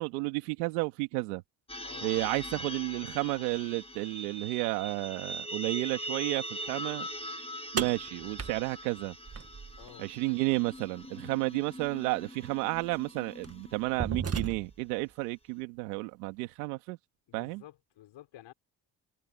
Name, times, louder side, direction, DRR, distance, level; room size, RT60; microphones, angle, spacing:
voice 1, 0.0-1.4 2.0-7.1 7.7-9.1 10.0-17.0 17.3-17.6, right 24 dB, 90° right, 2.2 m, -32 dB
sound 1, 1.7-14.2, equal, 10° left, 2.3 m, -42 dB
voice 2, 1.8-2.1 9.8-10.1 17.3-18.5, left 13 dB, 75° left, 5.7 m, -51 dB
sound 2, 7.8-9.9 11.8-11.9 12.8-13.0 13.4-14.9, right 5 dB, 30° right, 1.9 m, -35 dB
hypercardioid pair, 55°, 45 cm